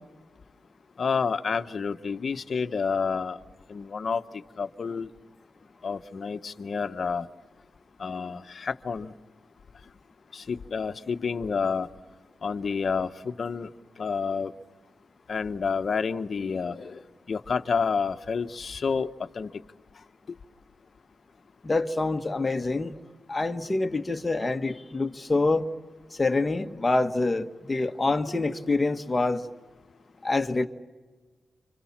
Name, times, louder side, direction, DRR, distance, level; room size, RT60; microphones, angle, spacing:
voice 1, 1.0-3.4 3.7-4.2 4.6-5.1 5.8-7.3 8.0-9.1 10.3-11.9 12.4-13.7 14.0-14.5 15.3-17.0 17.3-19.5, left 5 dB, 50° left, 1.0 m, -29 dB
voice 2, 21.6-22.9 23.3-25.7 26.2-29.4 30.2-30.7, left 3 dB, 20° left, 1.3 m, -26 dB
29.5 x 26.5 x 7.3 m
wide cardioid pair, 125°, 0 cm